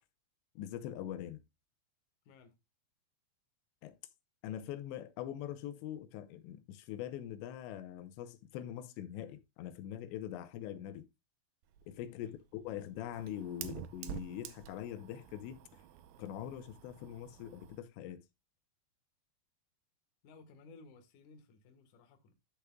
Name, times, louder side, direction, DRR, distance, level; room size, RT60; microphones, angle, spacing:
voice 1, 0.6-1.4 3.8-4.0 4.4-11.1 11.9-15.8 16.2-18.2, left 11 dB, 90° left, 3.1 m, -43 dB
voice 2, 2.3-2.6 12.2-12.4 20.2-22.3, left 3 dB, 60° left, 2.4 m, -58 dB
Fire, 11.6-17.8, right 10 dB, 80° right, 2.0 m, -49 dB
12.0 x 6.6 x 2.3 m
omnidirectional pair, 5.0 m